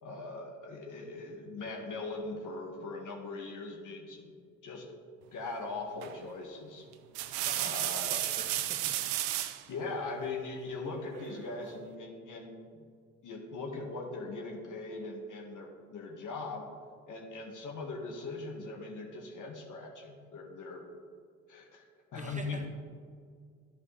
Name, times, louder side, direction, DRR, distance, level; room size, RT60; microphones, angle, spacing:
voice 1, 0.0-4.4 4.6-4.9 5.3-6.9 7.5-8.2 9.7-12.8 13.2-16.7 17.1-20.8 21.5-22.6, left 3 dB, 55° left, 1 dB, 1.8 m, -40 dB
sound 1, 6.0-6.3 6.9-9.6 11.1-11.8, right 13 dB, 70° right, 0.6 m, -33 dB
voice 2, 7.4-9.0 22.2-22.7, right 2 dB, 20° right, 4 dB, 1.0 m, -46 dB
13.5 x 5.2 x 3.3 m, 2.1 s
hypercardioid pair, 45°, 38 cm